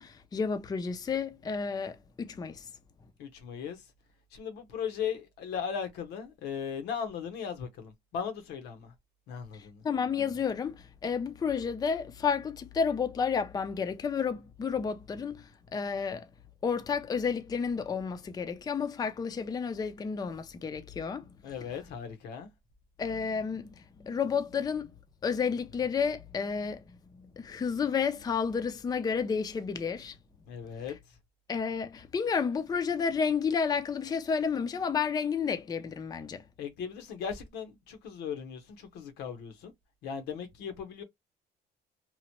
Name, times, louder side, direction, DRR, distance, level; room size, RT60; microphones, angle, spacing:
voice 1, 0.0-2.7 9.8-16.2 16.6-21.3 23.0-24.9 25.2-26.8 27.1-30.2 31.5-36.4, left 6 dB, 25° left, 0.4 m, -31 dB
voice 2, 3.2-3.8 4.3-8.9 9.3-9.9 21.4-22.5 30.5-31.0 36.6-39.7 40.0-41.0, left 7 dB, 80° left, 0.9 m, -37 dB
2.9 x 2.1 x 2.9 m
cardioid pair, 110°, 17 cm